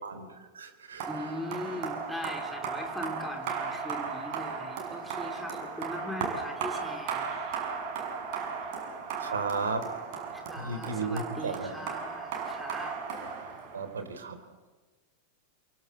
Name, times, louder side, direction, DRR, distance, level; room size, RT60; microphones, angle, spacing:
voice 1, 0.0-1.8 9.2-9.9 10.6-11.7 13.7-14.5, right 4 dB, 70° right, 8 dB, 3.5 m, -35 dB
sound 1, 1.0-14.0, right 6 dB, 45° right, 7.3 m, -36 dB
voice 2, 1.1-7.7 10.3-13.0, left 1 dB, ahead, 5 dB, 4.2 m, -40 dB
28.5 x 23.5 x 8.0 m, 1.3 s
figure-of-eight pair, 90°, 0 cm